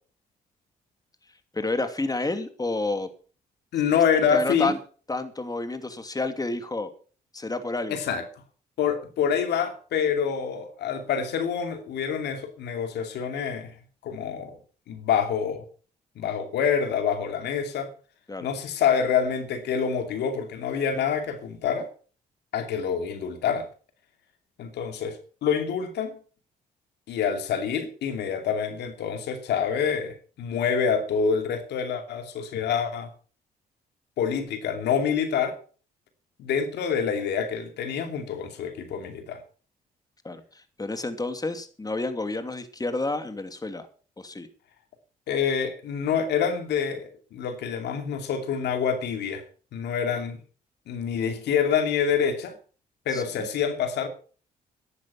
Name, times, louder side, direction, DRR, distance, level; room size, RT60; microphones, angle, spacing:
voice 1, 1.5-3.1 4.3-4.8 5.1-6.9 7.3-8.0 18.3-18.5 40.2-43.9 44.2-44.5 53.1-53.5, left 2 dB, 20° left, 9 dB, 2.6 m, -30 dB
voice 2, 3.7-4.7 7.9-8.2 8.8-13.7 14.0-14.6 14.9-15.7 16.2-17.9 18.4-21.9 22.5-23.7 24.6-26.2 27.1-33.1 34.2-35.6 36.4-39.4 45.3-49.4 49.7-50.4 50.9-52.6 53.1-54.1, left 7 dB, 75° left, 7 dB, 2.7 m, -26 dB
13.5 x 11.5 x 5.7 m, 0.40 s
hypercardioid pair, 50°, 18 cm